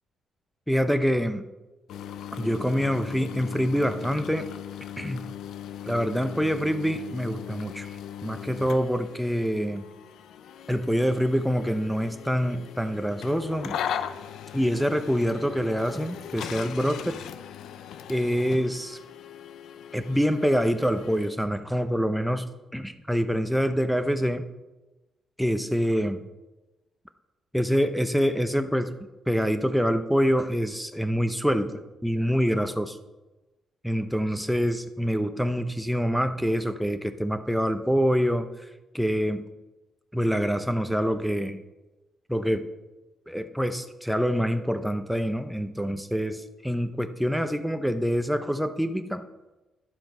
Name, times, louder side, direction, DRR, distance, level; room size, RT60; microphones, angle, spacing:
voice 1, 0.7-1.4 2.4-4.5 5.0-5.3 5.8-8.0 8.2-9.9 10.7-13.8 14.5-17.2 18.1-19.0 19.9-24.4 25.4-26.2 27.5-29.0 29.3-33.0 33.8-38.5 38.9-39.5 40.1-41.6 42.3-42.7 43.3-49.2, equal, ahead, 10 dB, 0.6 m, -26 dB
sound 1, 1.9-21.3, left 9 dB, 80° left, 0.5 m, -39 dB
11.0 x 7.6 x 5.3 m, 1.1 s
cardioid pair, 165°, 0 cm